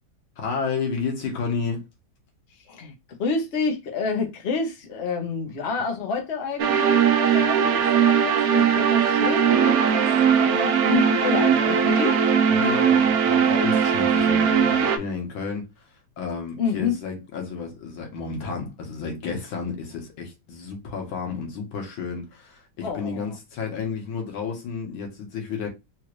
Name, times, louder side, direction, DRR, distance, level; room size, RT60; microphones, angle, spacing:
voice 1, 0.4-1.8 12.5-15.9 16.2-25.7, left 5 dB, 85° left, 2.0 m, -31 dB
voice 2, 3.2-12.2 16.6-16.9 22.8-23.2, left 5 dB, 45° left, 1.0 m, -29 dB
sound 1, 6.6-15.0, right 7 dB, 75° right, 0.8 m, -19 dB
4.4 x 2.5 x 3.0 m
omnidirectional pair, 2.1 m